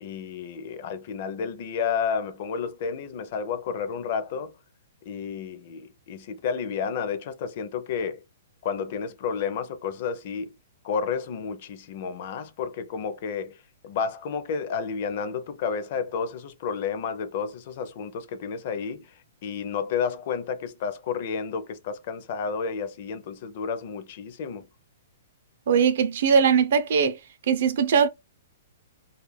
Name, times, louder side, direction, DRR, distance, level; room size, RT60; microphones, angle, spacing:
voice 1, 0.0-4.5 5.0-8.2 8.6-10.5 10.8-24.7, left 6 dB, 45° left, 0.4 m, -31 dB
voice 2, 25.7-27.2 27.5-28.1, right 6 dB, 55° right, 0.5 m, -20 dB
2.3 x 2.1 x 3.1 m
hypercardioid pair, 165°, 0 cm